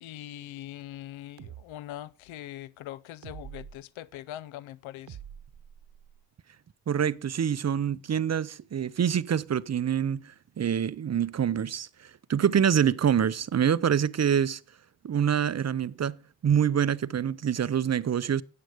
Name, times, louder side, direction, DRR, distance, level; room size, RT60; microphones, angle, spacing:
voice 1, 0.0-5.2, left 13 dB, 85° left, 0.6 m, -42 dB
sound 1, 1.4-1.6 3.2-3.8 5.1-6.2, right 9 dB, 65° right, 0.9 m, -45 dB
voice 2, 6.9-11.9 12.3-14.6 15.0-16.2 16.4-18.4, right 8 dB, 35° right, 0.5 m, -26 dB
10.5 x 7.7 x 4.8 m
supercardioid pair, 40°, 46 cm